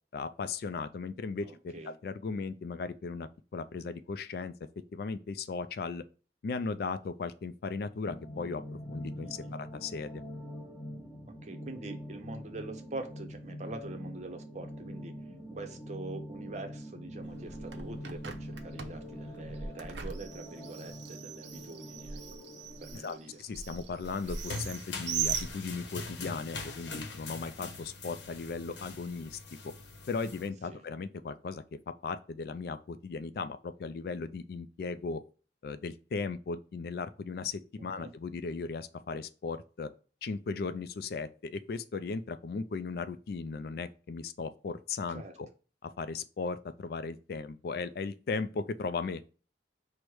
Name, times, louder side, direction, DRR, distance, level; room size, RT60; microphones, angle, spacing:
voice 1, 0.1-4.5 4.9-6.0 6.4-9.3 9.6-10.2 23.0-29.4 29.6-29.7 30.1-31.6 32.0-35.2 35.6-39.9 40.2-45.5 45.8-49.2, left 4 dB, 55° left, 0.3 m, -37 dB
voice 2, 1.4-1.9 9.2-9.6 11.2-22.2 22.8-23.4 30.7-30.8 37.8-38.1 45.1-45.3, right 2 dB, 40° right, 0.6 m, -44 dB
sound 1, 8.0-23.0, equal, ahead, 1.6 m, -44 dB
Bird, 17.2-26.1, right 7 dB, 80° right, 0.6 m, -40 dB
sound 2, 24.0-30.5, left 3 dB, 80° left, 0.8 m, -42 dB
4.6 x 2.1 x 4.7 m
head